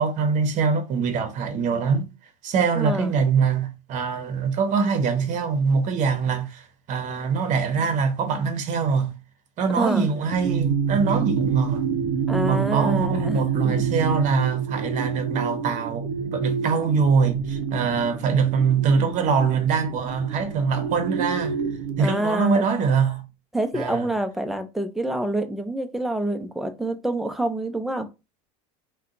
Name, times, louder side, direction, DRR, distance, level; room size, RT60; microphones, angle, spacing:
voice 1, 0.0-2.1 2.4-9.1 9.6-11.9 12.5-16.1 16.3-21.6 22.0-23.2 23.7-24.1, right 5 dB, 45° right, 0.8 m, -23 dB
voice 2, 2.8-3.1 9.7-10.1 12.3-13.9 22.0-22.6 23.5-28.1, right 1 dB, ahead, 0.4 m, -27 dB
sound 1, 10.3-22.0, right 6 dB, 85° right, 0.5 m, -27 dB
2.7 x 2.2 x 3.8 m
supercardioid pair, 120°, 18 cm